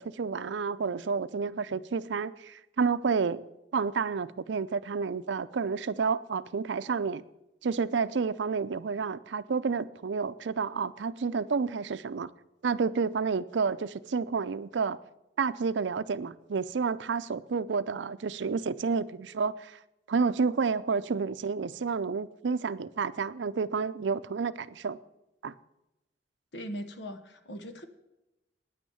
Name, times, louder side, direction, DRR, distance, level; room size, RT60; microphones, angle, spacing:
voice 1, 0.0-3.4 3.7-7.2 7.6-12.3 12.6-15.0 15.4-19.8 20.1-25.0 25.4-25.5, right 5 dB, 85° right, 0.5 m, -30 dB
voice 2, 26.5-27.9, equal, 75° left, 1.1 m, -40 dB
9.7 x 9.1 x 7.0 m
head